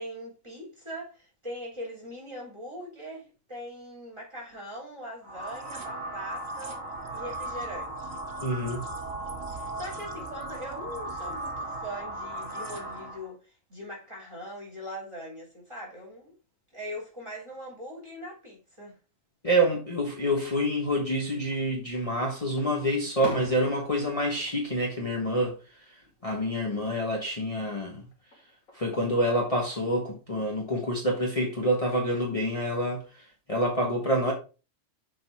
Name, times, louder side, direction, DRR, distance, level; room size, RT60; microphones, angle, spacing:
voice 1, 0.0-6.8 7.1-8.2 9.5-16.3 16.7-19.0, equal, 20° right, 3.9 m, -41 dB
sound 1, 5.2-13.3, right 1 dB, 80° right, 2.1 m, -37 dB
voice 2, 8.4-8.8 19.4-28.0 28.7-34.3, equal, 25° left, 1.4 m, -27 dB
Fireworks, 21.4-22.1 22.6-25.7 26.0-26.6 28.1-28.9, left 3 dB, 80° left, 2.0 m, -44 dB
6.9 x 4.1 x 4.6 m
omnidirectional pair, 1.4 m